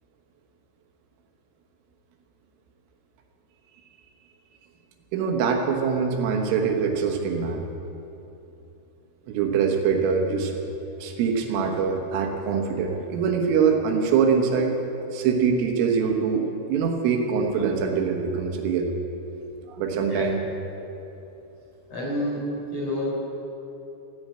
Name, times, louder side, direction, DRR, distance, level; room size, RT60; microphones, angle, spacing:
voice 1, 5.1-7.7 9.3-10.5 11.0-14.8 15.1-18.9 19.7-20.4, right 6 dB, 85° right, 3 dB, 3.8 m, -23 dB
voice 2, 19.9-20.3 21.9-23.1, left 1 dB, 35° left, -5 dB, 4.7 m, -29 dB
14.0 x 9.6 x 8.8 m, 3.0 s
omnidirectional pair, 5.7 m